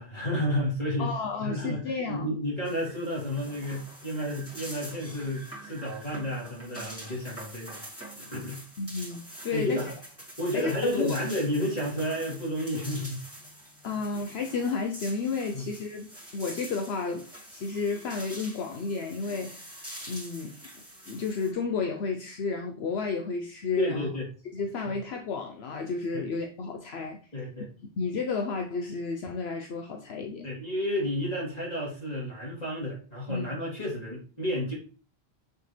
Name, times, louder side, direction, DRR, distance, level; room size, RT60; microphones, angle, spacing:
voice 1, 0.0-1.1 1.4-7.8 8.2-8.6 9.5-9.9 10.4-13.2 13.8-14.0 15.5-15.6 23.8-24.3 26.1-26.2 27.3-27.7 30.4-34.7, equal, 35° left, -5 dB, 3.5 m, -31 dB
voice 2, 1.0-2.3 8.8-9.9 10.5-11.2 13.8-20.5 21.1-24.1 24.5-27.2 27.8-30.5 33.3-33.5, left 4 dB, 75° left, 4 dB, 1.0 m, -32 dB
sound 1, 2.6-21.5, right 1 dB, 10° left, 2.3 m, -45 dB
6.6 x 6.6 x 3.3 m, 0.39 s
omnidirectional pair, 1.1 m